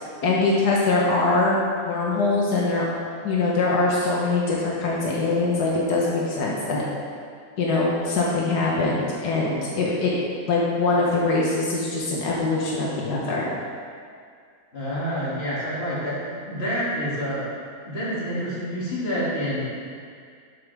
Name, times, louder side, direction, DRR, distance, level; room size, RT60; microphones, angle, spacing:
voice 1, 0.2-1.6 1.9-2.8 3.2-6.8 7.6-10.1 10.5-13.5, left 3 dB, 85° left, -4 dB, 1.8 m, -23 dB
voice 2, 14.7-17.4 17.8-19.7, equal, 40° left, -9 dB, 2.9 m, -28 dB
11.0 x 7.6 x 3.5 m, 2.2 s
omnidirectional pair, 1.7 m